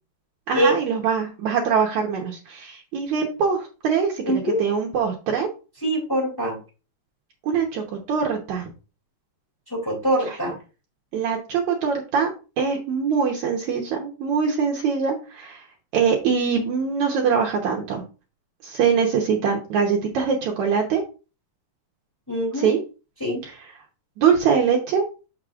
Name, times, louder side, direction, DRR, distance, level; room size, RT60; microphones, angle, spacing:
voice 1, 0.5-5.5 7.5-8.7 11.1-12.3 12.6-15.6 15.9-18.0 18.6-21.0 22.5-22.8 23.4-23.5 24.2-25.0, right 6 dB, 80° right, 0 dB, 1.6 m, -23 dB
voice 2, 4.2-4.6 5.8-6.6 9.7-10.6 22.3-22.7 23.2-23.4, right 1 dB, 5° left, -2 dB, 1.8 m, -23 dB
6.6 x 6.5 x 2.4 m, 0.32 s
omnidirectional pair, 4.8 m